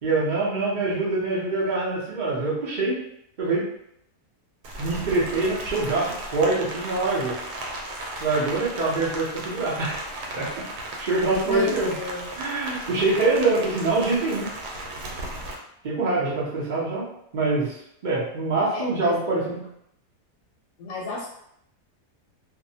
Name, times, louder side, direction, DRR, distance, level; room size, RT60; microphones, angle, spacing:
voice 1, 0.0-3.0 3.4-3.7 4.8-7.4 8.2-10.0 10.3-10.6 11.0-11.9 12.4-14.5 15.8-17.1 17.3-17.7 18.0-19.6, right 3 dB, 65° right, -6 dB, 0.4 m, -24 dB
Rain, 4.6-15.6, right 1 dB, 85° right, 1.1 m, -36 dB
voice 2, 11.4-12.3 18.7-19.2 20.8-21.3, left 4 dB, 70° left, -4 dB, 0.9 m, -32 dB
2.6 x 2.0 x 2.7 m, 0.73 s
omnidirectional pair, 1.7 m